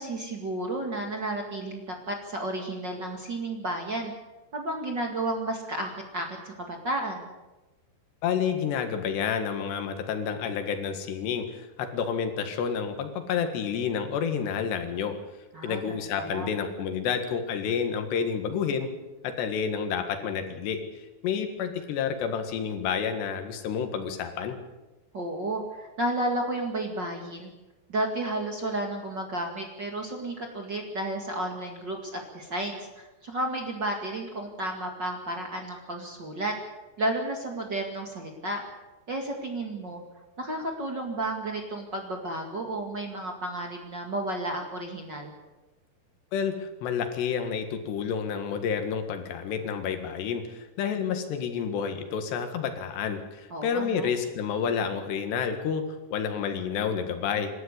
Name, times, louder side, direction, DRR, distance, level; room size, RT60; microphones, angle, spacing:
voice 1, 0.0-4.1 4.5-7.3 15.5-16.5 25.1-27.5 27.9-36.5 37.0-38.6 39.1-40.0 40.4-45.3 53.5-54.1, right 1 dB, 35° right, 2 dB, 2.0 m, -32 dB
voice 2, 8.2-15.2 15.6-18.9 19.2-24.6 46.3-57.5, left 7 dB, 85° left, 7 dB, 4.0 m, -29 dB
27.0 x 13.0 x 8.2 m, 1.1 s
omnidirectional pair, 4.7 m